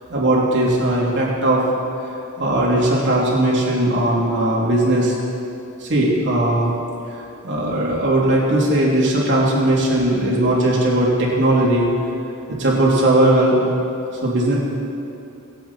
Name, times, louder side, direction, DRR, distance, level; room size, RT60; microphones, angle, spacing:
voice 1, 0.1-1.6 2.4-5.1 5.8-6.7 7.4-11.9 12.6-13.6 14.2-14.6, right 1 dB, 55° right, -4 dB, 3.3 m, -18 dB
24.5 x 8.4 x 4.5 m, 2.7 s
head